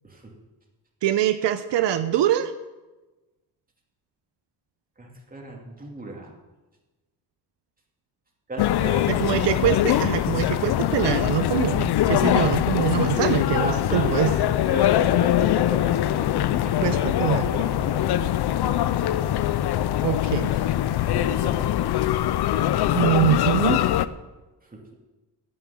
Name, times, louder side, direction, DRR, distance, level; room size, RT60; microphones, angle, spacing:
voice 1, 1.0-2.5 9.1-14.3 16.8-17.5 20.0-20.5 22.9-23.8, right 11 dB, 80° right, 10 dB, 0.8 m, -24 dB
voice 2, 5.0-6.3 8.5-9.4 13.6-14.4 14.7-19.2 21.0-22.1 24.7-24.9, right 2 dB, 20° right, 0 dB, 2.6 m, -37 dB
sound 1, 8.6-24.1, left 12 dB, 65° left, 0.6 m, -22 dB
9.8 x 8.9 x 8.5 m, 1.1 s
cardioid pair, 140°, 43 cm